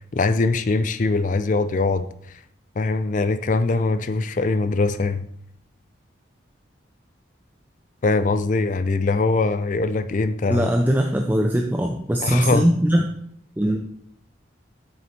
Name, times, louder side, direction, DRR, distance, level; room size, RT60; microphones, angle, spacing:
voice 1, 0.1-2.1 2.8-5.3 8.0-10.7 12.2-12.7, left 3 dB, 40° left, 12 dB, 0.4 m, -22 dB
voice 2, 10.5-13.0 13.6-13.8, equal, 10° right, 2 dB, 0.5 m, -20 dB
8.4 x 7.0 x 3.3 m, 0.70 s
head